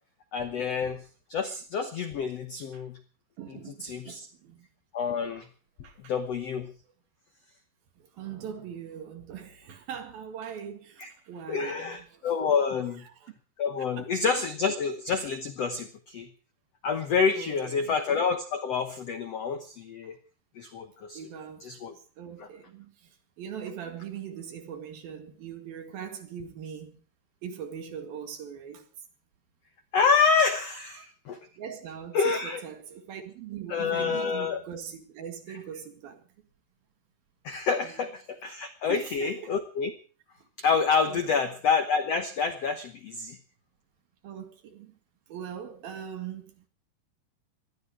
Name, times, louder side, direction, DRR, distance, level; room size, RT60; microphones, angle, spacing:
voice 1, 0.3-1.0 1.3-3.0 3.5-4.3 4.9-5.5 6.0-6.7 11.0-11.1 11.5-13.0 13.6-16.3 16.8-20.2 20.5-21.2 21.7-21.9 29.9-31.4 32.1-32.6 33.7-34.6 37.4-39.9 40.6-43.4, left 5 dB, 85° left, 1.4 m, -28 dB
voice 2, 3.4-4.7 5.8-6.1 8.0-12.3 13.0-13.3 14.0-14.1 17.3-18.0 21.1-27.0 27.4-28.9 30.9-31.0 31.6-36.2 37.5-38.0 38.9-39.5 41.1-41.6 44.2-44.9 45.3-46.7, right 8 dB, 65° right, 3.7 m, -41 dB
19.5 x 13.5 x 4.8 m
omnidirectional pair, 4.8 m